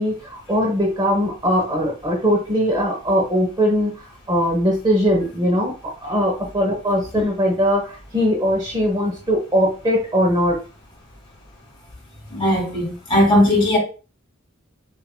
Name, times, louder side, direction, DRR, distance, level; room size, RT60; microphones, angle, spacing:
voice 1, 0.0-3.9 4.3-10.6, equal, 20° right, 1.0 m, -20 dB
voice 2, 12.3-13.8, left 1 dB, 25° left, 2.3 m, -18 dB
6.9 x 2.8 x 2.2 m
head